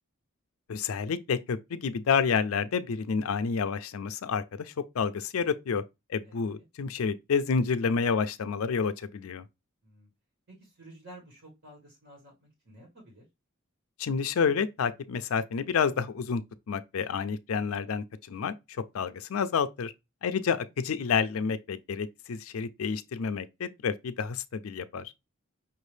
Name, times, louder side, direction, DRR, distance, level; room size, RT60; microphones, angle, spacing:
voice 1, 0.7-5.8 6.1-9.5 14.0-16.4 16.7-18.5 18.9-19.9 20.2-25.1, left 6 dB, 75° left, 0.4 m, -29 dB
voice 2, 10.5-13.3, right 1 dB, 60° right, 1.6 m, -52 dB
5.6 x 2.7 x 3.3 m
head